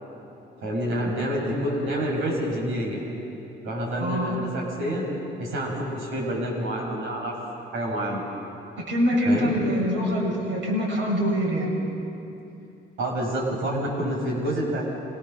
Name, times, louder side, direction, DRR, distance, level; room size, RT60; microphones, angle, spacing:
voice 1, 0.6-3.0 3.6-5.0 5.4-7.4 7.7-8.2 9.2-9.5 13.0-14.8, right 1 dB, 85° right, -1 dB, 6.0 m, -28 dB
voice 2, 4.0-4.4 8.8-11.8, equal, 70° right, -2 dB, 6.6 m, -24 dB
26.0 x 18.5 x 6.6 m, 2.8 s
cardioid pair, 90°, 20 cm